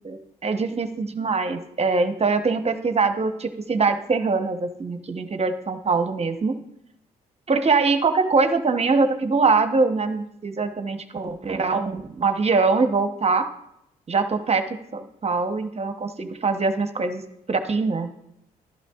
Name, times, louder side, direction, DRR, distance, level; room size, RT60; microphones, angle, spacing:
voice 1, 0.0-6.6 7.5-13.5 14.1-17.2 17.5-18.1, right 4 dB, 35° right, 8 dB, 0.9 m, -23 dB
11.5 x 11.5 x 2.4 m, 0.79 s
hypercardioid pair, 50°, 18 cm